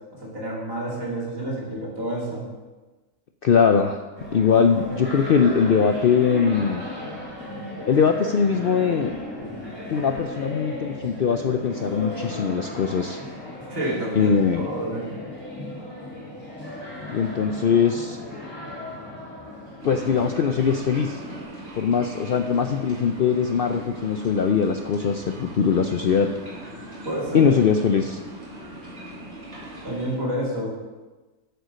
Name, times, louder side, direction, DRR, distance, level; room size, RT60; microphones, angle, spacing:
voice 1, 0.1-2.5 13.6-15.1 27.0-27.5 29.8-30.7, right 1 dB, 70° right, -5 dB, 3.2 m, -29 dB
voice 2, 3.4-4.0 4.3-6.8 7.9-9.1 9.9-13.2 14.1-14.6 17.1-18.2 19.8-21.2 21.8-26.3 27.3-28.2, left 6 dB, 60° left, 6 dB, 0.6 m, -21 dB
sound 1, 4.2-21.4, left 1 dB, 15° right, 3.0 m, -36 dB
sound 2, 19.8-30.1, right 1 dB, 50° right, 3.0 m, -39 dB
9.1 x 6.9 x 6.4 m, 1.2 s
omnidirectional pair, 1.5 m